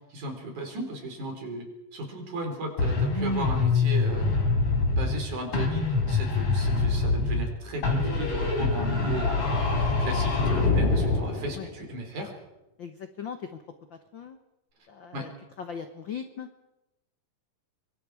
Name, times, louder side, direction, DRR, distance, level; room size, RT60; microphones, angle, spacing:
voice 1, 0.1-4.4 4.9-9.3 9.8-12.3 15.1-15.2, right 1 dB, 60° right, 3 dB, 5.5 m, -35 dB
sound 1, 2.8-5.2 5.5-7.5 7.8-11.3, left 3 dB, 40° left, 4.4 m, -25 dB
sound 2, 10.3-11.9, left 3 dB, 65° left, 5.0 m, -30 dB
voice 2, 12.8-13.6 13.9-14.4 14.9-15.3 15.6-16.5, left 7 dB, 80° left, 7 dB, 1.0 m, -39 dB
24.5 x 24.0 x 4.9 m, 0.95 s
omnidirectional pair, 3.9 m